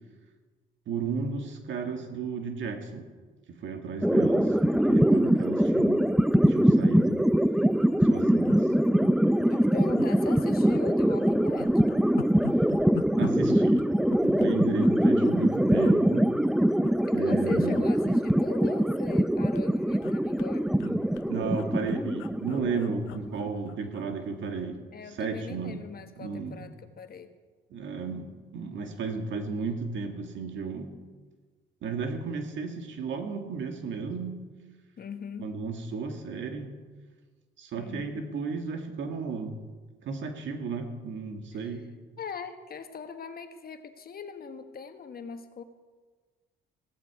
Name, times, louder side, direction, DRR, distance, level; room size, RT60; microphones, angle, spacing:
voice 1, 0.9-3.1 3.5-6.1 6.5-7.3 8.0-8.7 13.2-13.9 14.2-16.3 17.1-17.9 20.8-21.0 21.3-24.8 25.2-25.9 26.2-26.7 27.7-30.9 31.8-34.5 35.4-36.7 37.6-39.6 40.0-41.8, right 5 dB, 70° right, 5 dB, 1.9 m, -34 dB
sound 1, 4.0-23.5, equal, ahead, 0.5 m, -23 dB
voice 2, 4.8-5.1 9.5-11.7 17.1-20.7 24.9-27.3 35.0-35.5 37.8-38.2 41.5-41.8 42.2-45.6, left 6 dB, 50° left, 8 dB, 1.4 m, -41 dB
sound 2, 7.0-7.2 7.4-7.5 7.7-8.0 8.4-9.1 9.5-9.6 10.0-10.9 11.2-15.4 15.8-16.0 16.6-17.4 17.7-17.9 18.1-19.3 19.5-24.1 24.4-24.6, left 14 dB, 90° left, 0.5 m, -42 dB
16.0 x 14.5 x 4.8 m, 1.4 s
cardioid pair, 90°, 20 cm